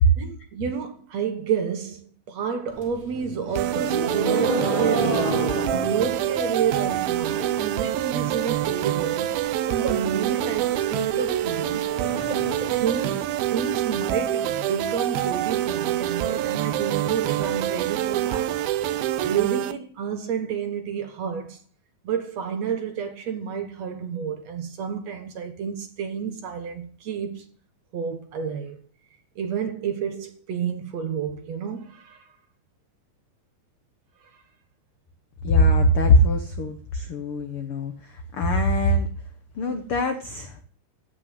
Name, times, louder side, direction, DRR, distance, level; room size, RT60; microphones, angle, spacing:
voice 1, 0.2-5.4 5.7-9.3 9.7-11.9 12.7-18.6 19.2-21.6 22.0-27.5 27.9-28.8 29.4-32.2, right 7 dB, 55° right, 2.4 m, -30 dB
sound 1, 2.7-7.7 8.0-8.5 8.8-8.9 9.2-9.3 9.6-13.6, right 1 dB, 15° right, 2.5 m, -31 dB
sound 2, 3.6-19.7, right 12 dB, 85° right, 2.8 m, -26 dB
voice 2, 35.4-37.9 38.3-39.1 39.6-40.6, left 1 dB, 65° left, 1.3 m, -21 dB
16.0 x 6.0 x 9.6 m
omnidirectional pair, 4.1 m